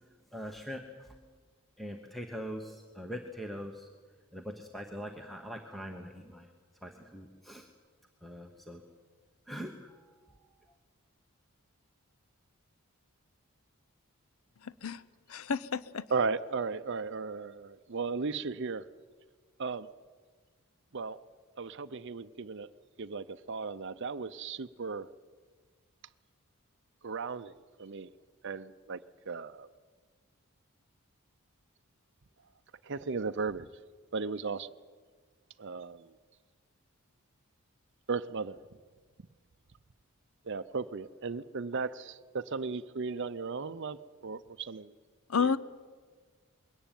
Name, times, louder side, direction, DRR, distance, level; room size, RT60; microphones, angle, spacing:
voice 1, 0.3-1.2 1.8-3.9 4.3-6.5 6.8-7.7 8.2-8.8 9.5-9.9, equal, ahead, 1.1 m, -42 dB
voice 2, 14.6-15.0 15.3-16.0 45.3-45.6, left 5 dB, 70° left, 0.6 m, -30 dB
voice 3, 16.1-18.9 19.6-19.9 20.9-21.2 21.6-22.7 23.0-25.1 27.0-28.1 28.4-29.7 32.8-33.7 34.1-34.7 35.6-36.1 38.1-38.6 40.4-44.9 45.4-45.6, right 4 dB, 55° right, 0.6 m, -36 dB
21.5 x 17.5 x 9.1 m
head